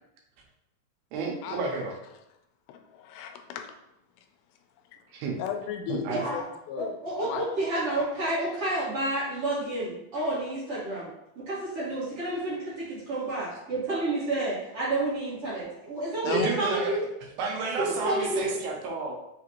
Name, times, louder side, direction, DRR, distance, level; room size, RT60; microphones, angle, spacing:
voice 1, 1.1-2.0 5.1-5.4 5.9-6.3 16.2-17.0 17.4-19.1, right 4 dB, 85° right, 0 dB, 2.6 m, -31 dB
voice 2, 2.7-3.7 5.4-7.0 7.2-7.4 16.2-16.5, left 9 dB, 85° left, 5 dB, 2.4 m, -35 dB
voice 3, 6.1-6.4 6.8-11.1 11.3-17.0 17.8-18.6, right 2 dB, 55° right, -10 dB, 1.8 m, -30 dB
6.0 x 2.5 x 2.9 m, 0.85 s
omnidirectional pair, 4.3 m